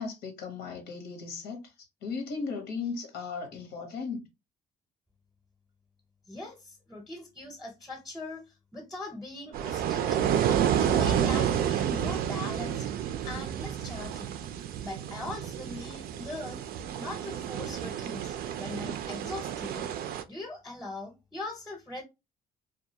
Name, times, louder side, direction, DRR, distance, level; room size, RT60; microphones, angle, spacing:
voice 1, 0.0-1.7 2.0-4.3, left 4 dB, 90° left, 0.9 m, -36 dB
voice 2, 6.3-10.4 10.7-12.9 13.2-14.3 14.8-16.6 17.0-22.0, left 2 dB, ahead, 0.7 m, -41 dB
sound 1, 9.5-20.2, right 9 dB, 65° right, 0.4 m, -30 dB
2.3 x 2.2 x 2.7 m
cardioid pair, 110°, 17 cm